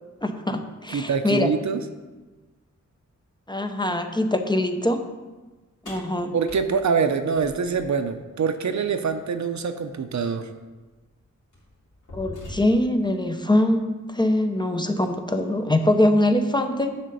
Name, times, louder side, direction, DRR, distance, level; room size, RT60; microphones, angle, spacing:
voice 1, 0.2-1.5 3.5-5.1 5.8-6.3 12.1-17.0, left 1 dB, 15° left, 6 dB, 0.5 m, -23 dB
voice 2, 0.9-1.8 6.3-10.5, right 5 dB, 70° right, 8 dB, 0.7 m, -25 dB
sound 1, 5.8-8.0 9.9-10.0 10.8-11.0 11.5-13.0, left 1 dB, 85° left, 3.1 m, -42 dB
10.0 x 3.7 x 6.7 m, 1.2 s
wide cardioid pair, 135°, 30 cm